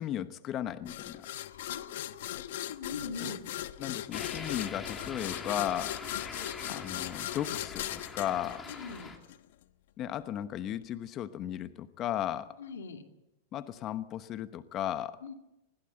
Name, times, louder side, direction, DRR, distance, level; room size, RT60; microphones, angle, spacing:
voice 1, 0.0-1.3 3.2-3.3 3.8-6.0 6.7-8.6 10.0-12.6 13.5-15.2, left 11 dB, 35° left, 12 dB, 1.0 m, -35 dB
sound 1, 0.9-9.4, left 13 dB, 70° left, 1.0 m, -39 dB
voice 2, 1.4-3.4 8.7-9.1 12.6-13.0 15.2-15.3, left 5 dB, 90° left, 5 dB, 2.4 m, -42 dB
sound 2, 4.1-9.2, left 4 dB, 15° left, 2.8 m, -44 dB
20.5 x 16.0 x 7.9 m, 0.93 s
hypercardioid pair, 125°, 0 cm